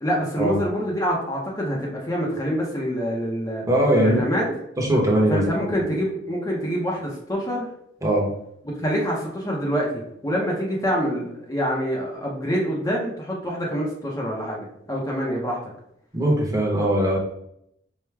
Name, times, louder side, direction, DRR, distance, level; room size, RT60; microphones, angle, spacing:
voice 1, 0.0-3.6 4.0-4.4 5.3-7.7 8.8-15.6, equal, 20° left, -3 dB, 0.6 m, -26 dB
voice 2, 3.7-4.2 4.8-5.4 8.0-8.3 16.1-17.2, right 1 dB, 15° right, -2 dB, 0.9 m, -20 dB
4.6 x 2.2 x 3.3 m, 0.74 s
head